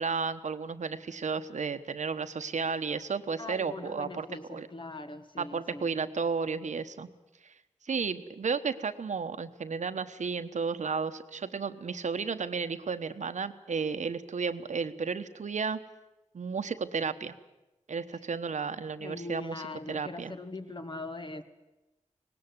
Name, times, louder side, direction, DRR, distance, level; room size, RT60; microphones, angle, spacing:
voice 1, 0.0-4.7 5.4-7.1 7.4-7.5 7.8-15.8 16.3-17.3 17.9-19.6 19.9-20.3, right 5 dB, 70° right, 10 dB, 1.1 m, -33 dB
voice 2, 3.4-5.9 19.0-21.4, left 2 dB, 40° left, 8 dB, 1.6 m, -41 dB
19.0 x 17.5 x 9.7 m, 1.0 s
wide cardioid pair, 95°, 13 cm